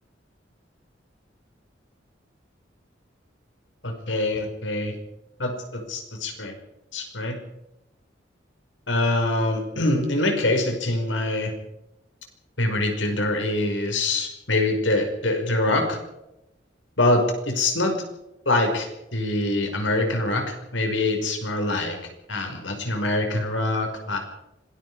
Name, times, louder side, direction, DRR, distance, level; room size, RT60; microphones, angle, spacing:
voice 1, 3.8-4.9 5.4-6.5 6.9-7.4 8.9-11.5 12.6-16.0 17.0-18.0 18.5-22.0 22.3-24.2, left 2 dB, 80° left, 4 dB, 5.6 m, -24 dB
26.0 x 20.0 x 5.0 m, 0.89 s
head